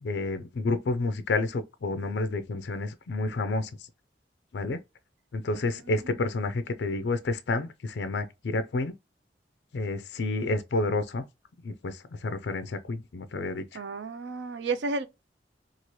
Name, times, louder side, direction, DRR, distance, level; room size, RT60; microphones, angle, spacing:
voice 1, 0.0-3.7 4.5-4.8 5.3-8.9 9.7-11.2 11.6-13.8, left 2 dB, 70° left, 0.4 m, -30 dB
voice 2, 13.7-15.1, right 3 dB, 85° right, 0.4 m, -31 dB
2.8 x 2.4 x 3.0 m
head